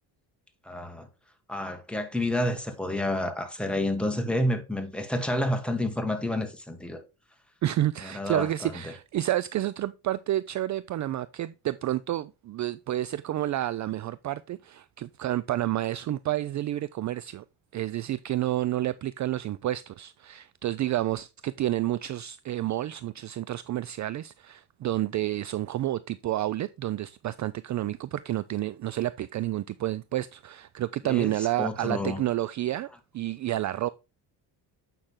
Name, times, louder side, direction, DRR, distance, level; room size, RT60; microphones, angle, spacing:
voice 1, 0.6-1.1 1.5-7.0 8.0-8.9 31.0-31.3 31.6-32.2, left 1 dB, ahead, 1.7 m, -29 dB
voice 2, 7.6-17.4 17.7-32.9 33.1-33.9, right 14 dB, 40° right, 0.4 m, -30 dB
8.8 x 5.8 x 3.7 m
cardioid pair, 90°, 44 cm